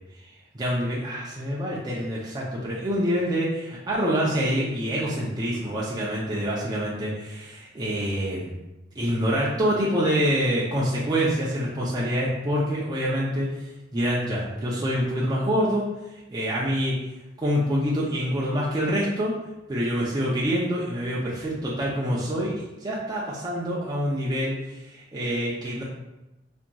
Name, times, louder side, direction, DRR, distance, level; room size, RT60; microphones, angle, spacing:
voice 1, 0.2-8.5 9.0-13.5 13.9-15.9 16.3-17.0 17.4-19.3 19.7-25.8, equal, 20° right, -6 dB, 0.4 m, -26 dB
2.8 x 2.5 x 2.2 m, 0.98 s
head